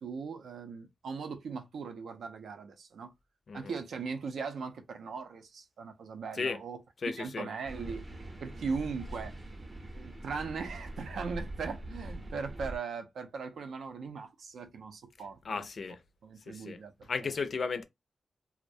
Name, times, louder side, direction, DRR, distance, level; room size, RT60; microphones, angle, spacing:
voice 1, 0.0-3.1 3.5-6.8 7.2-8.1 8.4-9.3 9.9-15.7 16.2-17.3, right 5 dB, 90° right, 0.5 m, -39 dB
voice 2, 7.0-7.5 15.4-16.0 16.5-17.8, left 5 dB, 50° left, 0.4 m, -35 dB
sound 1, 7.6-12.8, right 1 dB, 30° right, 0.6 m, -43 dB
2.3 x 2.0 x 2.6 m
wide cardioid pair, 140°, 0 cm